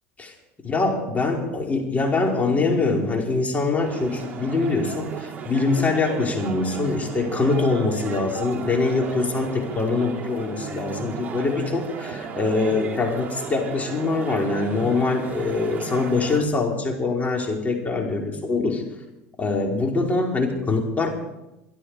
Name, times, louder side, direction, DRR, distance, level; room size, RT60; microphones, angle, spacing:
voice 1, 0.6-18.8 19.4-21.2, left 3 dB, 25° left, 0 dB, 4.8 m, -24 dB
sound 1, 3.8-16.4, right 6 dB, 30° right, 4.0 m, -35 dB
23.0 x 12.0 x 5.1 m, 0.93 s
hypercardioid pair, 85°, 6 cm